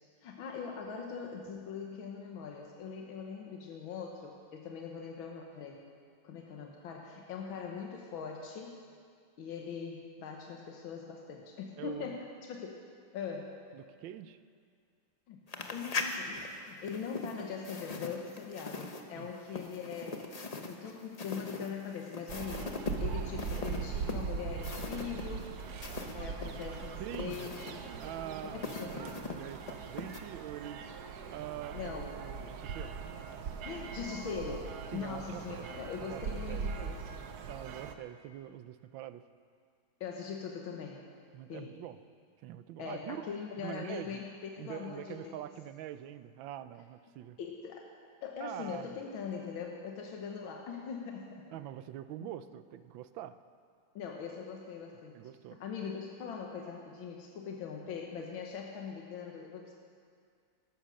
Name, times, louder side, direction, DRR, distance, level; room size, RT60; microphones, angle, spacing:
voice 1, 0.2-5.8 6.2-8.8 9.4-12.8 13.1-13.5 15.3-15.4 15.7-20.3 20.7-25.5 26.1-27.8 28.4-29.2 31.7-32.2 33.6-37.2 40.0-41.0 41.5-41.7 42.8-45.3 47.4-47.9 48.2-51.4 52.2-52.3 54.0-55.2 55.6-59.7, left 6 dB, 85° left, 0 dB, 1.9 m, -41 dB
voice 2, 11.8-12.2 13.7-14.4 19.1-19.3 27.0-27.5 28.0-30.9 31.3-33.0 34.9-35.7 36.0-36.6 37.5-39.2 41.3-42.0 42.4-43.2 43.6-44.2 44.6-47.4 48.4-48.9 51.5-53.4 55.1-55.6, right 12 dB, 80° right, 12 dB, 1.3 m, -44 dB
sound 1, 15.5-26.2 26.4-30.2, left 3 dB, 50° left, 0.4 m, -41 dB
sound 2, 22.3-37.9, right 6 dB, 60° right, 1.1 m, -41 dB
14.0 x 12.5 x 6.4 m, 2.2 s
omnidirectional pair, 2.1 m